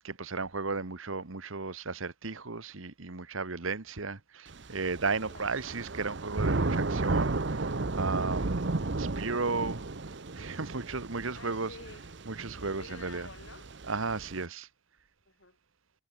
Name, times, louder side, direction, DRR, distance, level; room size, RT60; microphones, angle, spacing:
voice 1, 0.0-8.7 9.0-9.8 10.3-11.7 12.3-13.3 13.9-14.7, right 4 dB, 75° right, 1.4 m, -34 dB
Thunder / Rain, 4.5-14.4, right 3 dB, 55° right, 0.9 m, -34 dB
voice 2, 5.3-5.6 11.3-12.1 12.6-13.7 15.3-15.6, left 3 dB, 65° left, 5.6 m, -50 dB
head